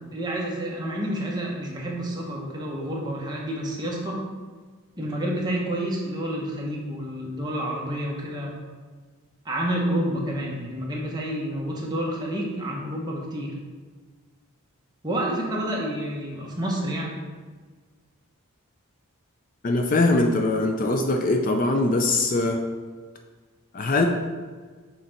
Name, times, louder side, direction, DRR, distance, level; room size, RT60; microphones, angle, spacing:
voice 1, 0.1-4.2 5.0-8.6 9.4-13.6 15.0-17.2, right 1 dB, 20° right, -3 dB, 1.0 m, -29 dB
voice 2, 19.6-22.6 23.7-24.0, left 2 dB, 40° left, 4 dB, 0.4 m, -22 dB
6.7 x 3.8 x 4.4 m, 1.4 s
head